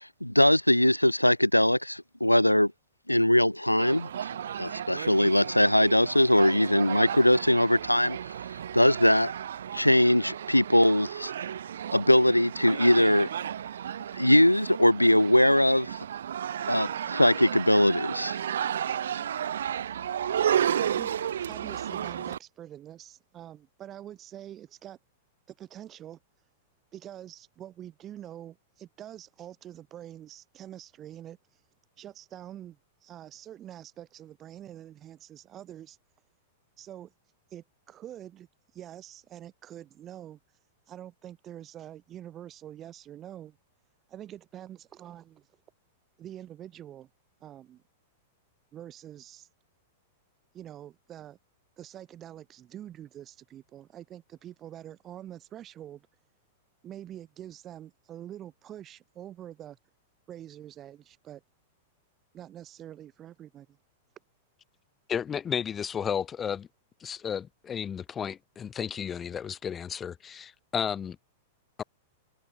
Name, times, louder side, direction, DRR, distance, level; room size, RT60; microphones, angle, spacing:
voice 1, 0.0-2.7 3.1-4.1 4.6-8.2 8.7-9.3 9.7-11.3 11.9-13.3 14.1-16.0 16.7-18.4, left 1 dB, 90° left, 0.8 m, -21 dB
sound 1, 3.8-22.4, right 9 dB, 65° right, 0.7 m, -33 dB
voice 2, 20.8-21.1 21.4-25.0 25.6-26.2 26.9-31.7 32.0-36.0 36.8-37.1 37.5-40.6 40.9-43.6 44.1-45.6 46.2-47.1 47.4-47.8 48.7-49.5 50.5-51.4 51.8-56.0 56.8-59.8 60.3-61.4 62.3-63.7, right 11 dB, 30° right, 3.7 m, -45 dB
voice 3, 65.1-66.7 67.0-71.2 71.8-71.9, left 8 dB, 20° left, 0.4 m, -33 dB
figure-of-eight pair, 95°, 0 cm